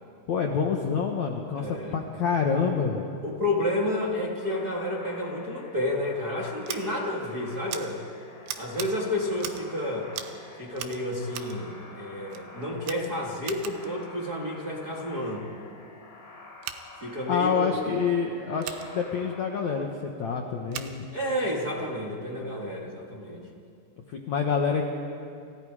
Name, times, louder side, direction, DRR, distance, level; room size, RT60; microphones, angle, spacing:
voice 1, 0.3-3.1 17.3-21.1 24.1-24.9, left 6 dB, 65° left, 2 dB, 1.9 m, -27 dB
voice 2, 1.5-2.0 3.2-8.2 8.6-10.1 10.6-15.5 17.0-17.7 21.1-23.4, left 1 dB, 30° right, -3 dB, 1.9 m, -30 dB
sound 1, 4.4-19.4, left 2 dB, 80° left, 7.0 m, -48 dB
Scissors, 6.6-6.8 7.7-7.8 8.5-8.9 9.4-9.7 10.1-10.4 10.7-11.6 12.3-12.4 12.8-13.9 16.6-16.8 18.6-18.9 20.7-20.9, right 11 dB, 80° right, 3.4 m, -38 dB
29.5 x 27.5 x 5.0 m, 2.4 s
omnidirectional pair, 5.0 m